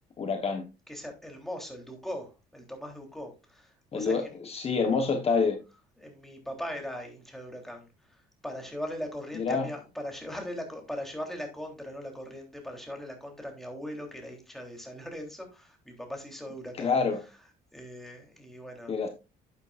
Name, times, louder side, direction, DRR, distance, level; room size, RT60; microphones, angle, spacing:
voice 1, 0.2-0.6 3.9-5.6 9.3-9.7 16.7-17.2 18.9-19.1, left 5 dB, 35° left, 5 dB, 1.2 m, -27 dB
voice 2, 0.9-4.3 6.0-7.9 8.4-16.9 17.7-18.9, equal, ahead, 2 dB, 3.5 m, -39 dB
11.5 x 8.2 x 2.5 m, 0.28 s
cardioid pair, 110°, 17 cm